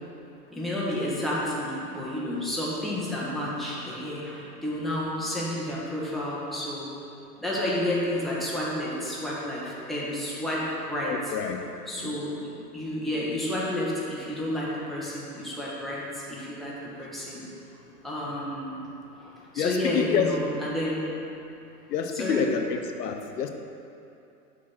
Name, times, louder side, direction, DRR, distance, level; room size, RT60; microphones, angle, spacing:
voice 1, 0.5-6.9 7.4-11.3 11.9-17.5 18.0-18.8 19.2-21.0 22.1-22.5, left 1 dB, ahead, -7 dB, 1.5 m, -31 dB
voice 2, 11.1-11.6 12.0-12.1 19.6-20.3 21.9-23.5, left 7 dB, 85° left, 5 dB, 0.7 m, -28 dB
6.4 x 4.1 x 5.8 m, 2.7 s
hypercardioid pair, 105°, 47 cm